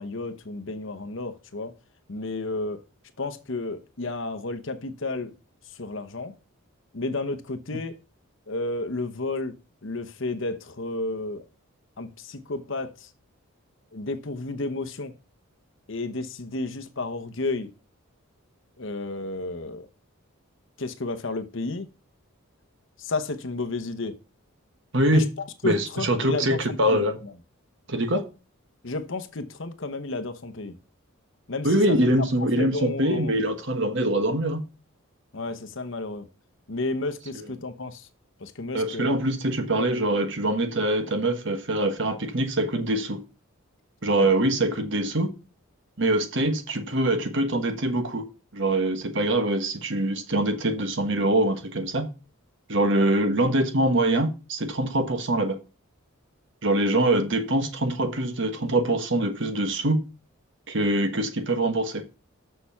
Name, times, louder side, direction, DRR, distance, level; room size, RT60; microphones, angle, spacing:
voice 1, 0.0-1.7 2.1-2.8 3.2-5.3 5.8-6.4 6.9-8.0 8.5-9.5 9.8-11.4 12.0-13.1 13.9-15.1 15.9-17.7 18.8-19.9 20.8-21.9 23.0-24.2 25.1-25.3 25.6-27.3 28.8-30.8 31.5-32.1 32.4-33.4 35.3-36.3 36.7-38.1 38.4-39.1 44.1-44.3 52.9-53.1, left 2 dB, 55° left, 0.9 m, -32 dB
voice 2, 25.6-27.2 27.9-28.2 31.6-34.6 38.7-43.2 44.0-45.3 46.0-48.2 48.5-52.1 52.7-55.6 56.6-60.0 60.7-62.0, right 1 dB, 55° right, 1.3 m, -24 dB
6.8 x 6.4 x 5.8 m
head